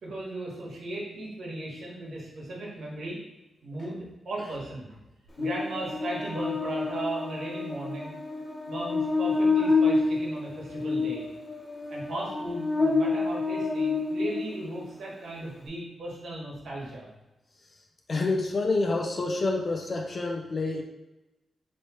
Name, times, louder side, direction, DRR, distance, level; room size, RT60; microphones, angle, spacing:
voice 1, 0.0-3.2 3.6-5.0 5.4-8.1 8.7-11.3 11.9-17.1, right 1 dB, 70° right, -4 dB, 1.5 m, -36 dB
Buzz, 5.4-14.8, left 3 dB, 25° left, 1.4 m, -28 dB
voice 2, 18.1-20.8, left 3 dB, 40° left, 1 dB, 0.5 m, -27 dB
3.2 x 3.1 x 4.3 m, 0.99 s
wide cardioid pair, 115°, 0 cm